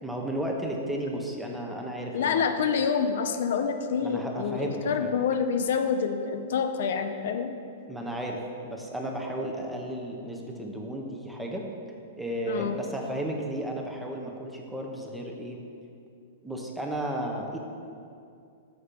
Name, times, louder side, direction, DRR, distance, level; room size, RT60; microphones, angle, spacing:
voice 1, 0.0-2.5 4.0-5.2 7.9-11.7 12.2-15.6 16.4-17.6, right 1 dB, 5° right, 0 dB, 0.7 m, -33 dB
voice 2, 2.1-7.5 12.5-12.8, left 6 dB, 70° left, 7 dB, 0.4 m, -27 dB
6.6 x 4.3 x 5.2 m, 2.5 s
hypercardioid pair, 135°, 0 cm